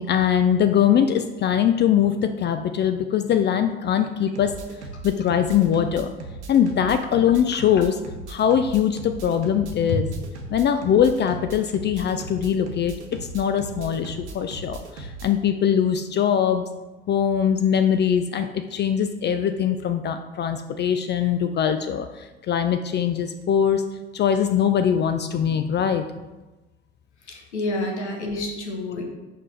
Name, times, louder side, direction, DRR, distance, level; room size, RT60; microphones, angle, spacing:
voice 1, 0.0-4.6 5.0-6.1 6.5-8.0 8.3-10.0 10.5-12.9 13.3-16.7 17.1-23.8 24.1-26.1, left 8 dB, 35° left, 8 dB, 0.4 m, -22 dB
sound 1, 4.3-15.3, right 3 dB, 85° right, 0.8 m, -37 dB
voice 2, 27.2-29.0, left 2 dB, 85° left, 1 dB, 1.1 m, -28 dB
5.0 x 5.0 x 4.2 m, 1.1 s
hypercardioid pair, 60°, 33 cm